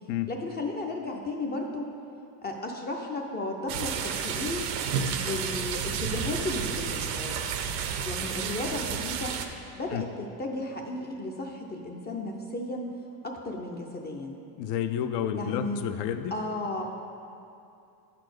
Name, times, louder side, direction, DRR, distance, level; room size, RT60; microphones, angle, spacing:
voice 1, 0.3-1.9 2.4-4.6 5.2-7.4 8.0-9.4 9.8-12.9 13.2-14.4 15.3-15.8 16.3-16.8, left 2 dB, 25° left, 1 dB, 0.5 m, -34 dB
sound 1, 3.7-9.5, right 7 dB, 80° right, 0.8 m, -31 dB
voice 2, 14.6-16.3, left 9 dB, 65° left, 10 dB, 0.6 m, -30 dB
8.8 x 4.2 x 6.5 m, 2.6 s
cardioid pair, 135°, 45 cm